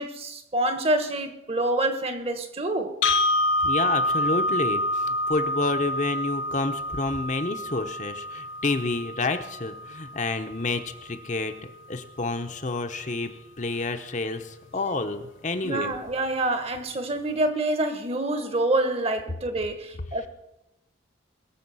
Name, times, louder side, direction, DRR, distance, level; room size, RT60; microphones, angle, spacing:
voice 1, 0.0-3.0 15.6-20.3, right 2 dB, 30° right, 1.2 m, -27 dB
sound 1, 3.0-11.1, left 1 dB, 80° left, 0.8 m, -28 dB
voice 2, 3.6-11.5 11.9-16.0, left 3 dB, 40° left, 0.9 m, -29 dB
21.5 x 7.2 x 5.6 m
head